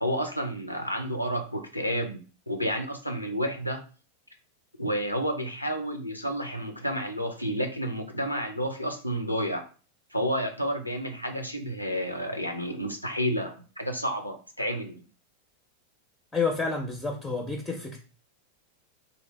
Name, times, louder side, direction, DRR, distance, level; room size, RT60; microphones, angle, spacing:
voice 1, 0.0-3.8 4.8-9.7 10.1-15.0, equal, 90° left, 5 dB, 0.5 m, -30 dB
voice 2, 16.3-18.0, left 4 dB, 10° left, 1 dB, 0.5 m, -29 dB
2.7 x 2.0 x 3.2 m, 0.37 s
figure-of-eight pair, 90°, 0 cm